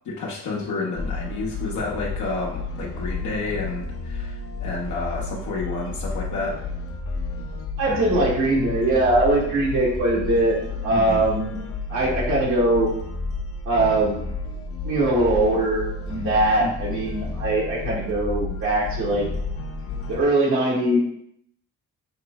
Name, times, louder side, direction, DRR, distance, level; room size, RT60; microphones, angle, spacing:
voice 1, 0.1-6.7 7.9-8.0 10.9-11.2 16.6-16.7, left 3 dB, 75° left, -3 dB, 1.0 m, -30 dB
sound 1, 1.0-20.2, left 3 dB, 50° left, 0.7 m, -32 dB
voice 2, 7.8-10.6 10.8-11.6 11.9-12.9 13.6-14.3 14.8-19.3 20.1-21.0, right 1 dB, 80° right, -5 dB, 1.5 m, -21 dB
5.9 x 2.0 x 3.4 m, 0.72 s
cardioid pair, 90°, 30 cm